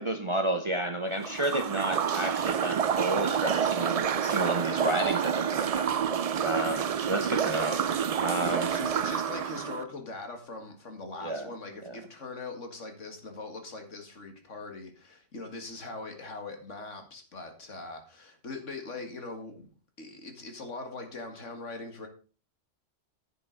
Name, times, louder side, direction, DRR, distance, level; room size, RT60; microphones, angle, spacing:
voice 1, 0.0-5.9 6.4-7.8 8.2-8.7 11.2-11.5 11.8-12.0, right 1 dB, 30° right, 0.8 m, -31 dB
sound 1, 1.2-9.8, right 8 dB, 60° right, 0.3 m, -28 dB
voice 2, 8.4-19.7 20.0-22.1, left 3 dB, 85° left, 2.3 m, -41 dB
10.5 x 8.2 x 3.9 m
omnidirectional pair, 1.2 m